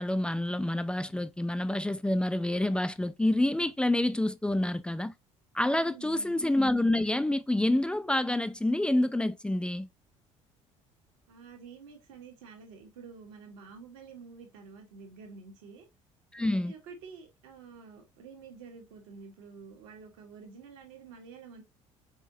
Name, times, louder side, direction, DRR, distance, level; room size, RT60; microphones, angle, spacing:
voice 1, 0.0-5.1 5.5-9.9 16.3-16.7, left 1 dB, 5° left, 0.3 m, -28 dB
voice 2, 5.8-6.4 11.3-15.9 16.4-21.6, right 5 dB, 65° right, 1.4 m, -49 dB
4.4 x 3.5 x 2.6 m
figure-of-eight pair, 55°, 17 cm